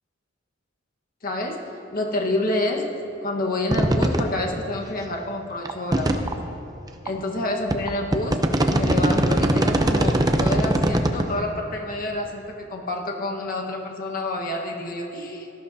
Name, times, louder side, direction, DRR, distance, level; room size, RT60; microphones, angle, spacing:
voice 1, 1.2-1.6 1.9-2.9 3.2-6.3 7.0-8.4 8.7-15.5, left 2 dB, 45° left, 1 dB, 1.3 m, -28 dB
sound 1, 3.7-4.2 4.7-4.8 5.6-6.3 7.1-7.2 7.7-11.2, right 1 dB, 20° right, 0.6 m, -20 dB
18.0 x 13.5 x 2.7 m, 2.8 s
head